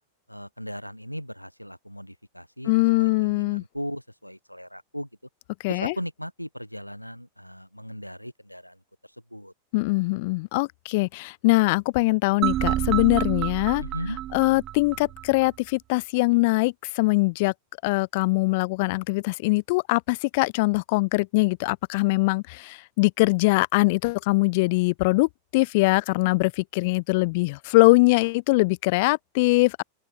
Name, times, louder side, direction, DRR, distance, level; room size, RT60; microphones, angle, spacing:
voice 1, 0.3-5.1 5.7-9.5 10.0-10.1 13.8-14.2, equal, 90° left, 6.5 m, -37 dB
voice 2, 2.7-3.6 5.6-5.9 9.7-13.8 14.3-17.5 17.8-29.8, left 25 dB, 50° left, 1.3 m, -22 dB
sound 1, 12.4-15.5, right 13 dB, 35° right, 0.6 m, -29 dB
open air
figure-of-eight pair, 90°, 0 cm